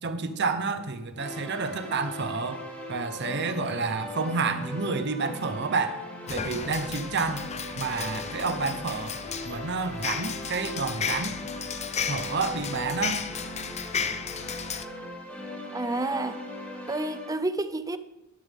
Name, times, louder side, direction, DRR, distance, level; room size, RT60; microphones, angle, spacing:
voice 1, 0.0-2.6 2.9-6.0 6.3-7.4 7.8-9.1 9.4-11.4 12.1-13.2, right 4 dB, 55° right, 1.0 m, -29 dB
sound 1, 1.2-17.3, left 1 dB, 10° left, 2.4 m, -39 dB
sound 2, 6.3-14.9, left 6 dB, 30° left, 0.6 m, -34 dB
voice 2, 15.7-16.4 16.9-18.0, right 2 dB, 15° right, 0.6 m, -29 dB
12.5 x 11.0 x 3.6 m
head